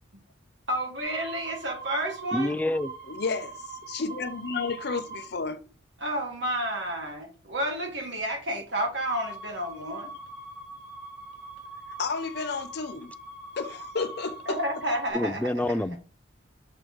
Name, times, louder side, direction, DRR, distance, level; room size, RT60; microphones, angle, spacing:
voice 1, 0.7-2.5 6.0-10.1 14.5-16.0, right 1 dB, 65° right, 2.0 m, -31 dB
sound 1, 1.0-5.3 9.1-15.1, right 3 dB, 45° right, 1.9 m, -42 dB
voice 2, 2.3-2.9 15.1-16.0, left 1 dB, 10° left, 0.3 m, -27 dB
voice 3, 3.1-3.6 3.9-5.6 12.0-13.1 13.6-14.6, left 4 dB, 55° left, 0.6 m, -31 dB
7.4 x 3.2 x 5.1 m
head